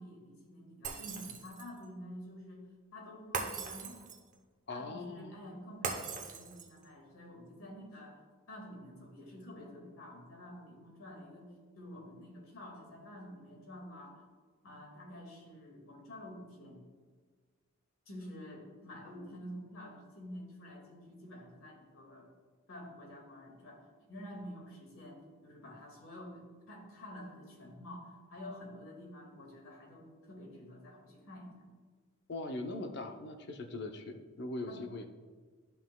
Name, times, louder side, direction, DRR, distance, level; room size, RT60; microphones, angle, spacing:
voice 1, 0.0-2.6 2.9-4.0 4.7-8.2 8.5-11.5 11.8-14.2 14.6-16.8 18.1-22.3 22.7-31.5 34.7-34.8, equal, 85° left, -1 dB, 2.0 m, -49 dB
Shatter, 0.8-1.8 3.3-4.3 5.8-6.8, right 5 dB, 40° right, 0.8 m, -39 dB
voice 2, 4.7-5.3 32.3-35.1, left 2 dB, 55° left, 5 dB, 0.7 m, -41 dB
11.5 x 5.7 x 2.3 m, 1.4 s
head